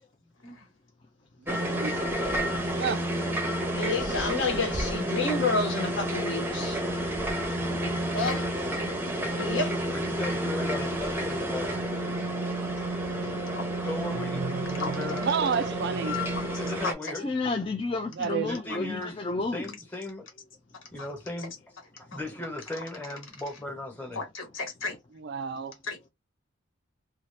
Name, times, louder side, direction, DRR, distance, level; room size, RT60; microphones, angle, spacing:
sound 1, 1.5-16.9, right 1 dB, 10° right, 0.6 m, -30 dB
voice 1, 1.5-2.1 2.8-3.0 14.2-16.2 18.2-18.5 18.8-18.9 25.2-25.7, right 6 dB, 55° right, 0.3 m, -31 dB
voice 2, 3.7-6.8 9.3-9.8, left 3 dB, 60° left, 1.0 m, -29 dB
voice 3, 8.1-8.4 13.5-13.6 14.8-15.2 16.2-16.5 16.8-16.9 18.7-18.8 21.0-21.1 22.1-22.2 24.1-24.9 25.8-26.0, left 4 dB, 75° left, 1.4 m, -34 dB
voice 4, 9.9-11.9 13.8-14.5 14.7-15.7 16.5-17.3 18.5-19.1 19.5-20.3 20.9-21.6 22.1-24.2, left 2 dB, 10° left, 1.0 m, -37 dB
voice 5, 17.2-19.7, left 3 dB, 25° left, 0.4 m, -31 dB
2.7 x 2.4 x 3.2 m
head